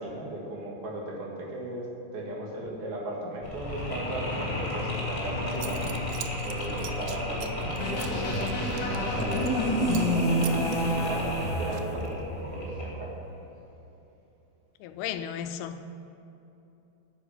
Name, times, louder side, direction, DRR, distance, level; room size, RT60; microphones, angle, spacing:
voice 1, 0.0-5.9 6.4-13.2, right 1 dB, 65° right, -2 dB, 3.7 m, -37 dB
Mechanisms, 3.4-13.2, left 1 dB, 10° left, 1.7 m, -33 dB
Zipper (clothing) / Coin (dropping), 5.2-5.3 5.5-9.6 9.9-10.1 10.4-12.2, right 12 dB, 80° right, 2.4 m, -43 dB
sound 1, 7.8-12.0, equal, 55° left, 2.7 m, -28 dB
voice 2, 14.8-15.9, left 9 dB, 80° left, 9 dB, 2.3 m, -35 dB
9.7 x 8.2 x 8.9 m, 2.9 s
omnidirectional pair, 4.9 m